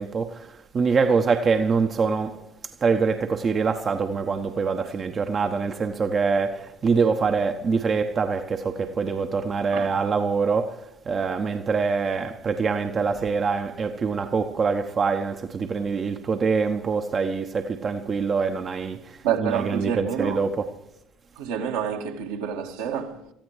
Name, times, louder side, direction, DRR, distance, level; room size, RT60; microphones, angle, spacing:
voice 1, 0.0-2.5 2.8-20.7, right 5 dB, 35° right, 1.1 m, -24 dB
voice 2, 19.2-20.5 21.4-23.3, right 8 dB, 65° right, 1.8 m, -28 dB
27.5 x 15.0 x 3.2 m
figure-of-eight pair, 55°, 0 cm